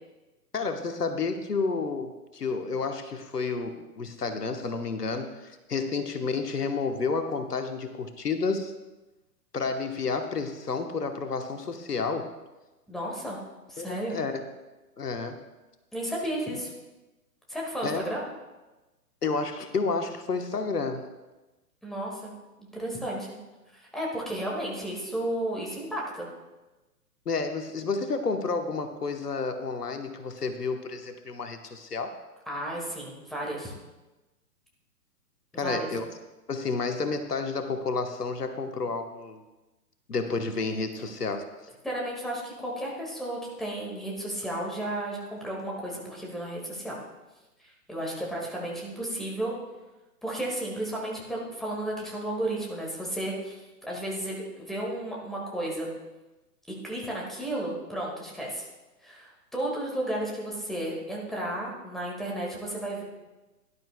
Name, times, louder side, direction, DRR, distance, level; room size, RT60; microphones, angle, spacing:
voice 1, 0.5-8.7 9.5-12.3 13.8-14.4 15.0-15.4 17.8-18.0 19.2-21.1 27.3-32.1 35.6-36.0 36.5-39.4 40.1-41.4, left 4 dB, 70° left, 7 dB, 1.2 m, -30 dB
voice 2, 12.9-13.4 13.7-14.2 15.9-16.7 17.5-18.2 21.8-22.3 22.6-23.3 23.7-26.3 32.5-33.7 35.5-35.9 41.8-47.0 47.6-49.5 50.2-55.9 56.7-58.6 59.0-63.0, right 1 dB, ahead, -3 dB, 1.8 m, -33 dB
17.5 x 11.5 x 2.2 m, 1.1 s
figure-of-eight pair, 125°, 48 cm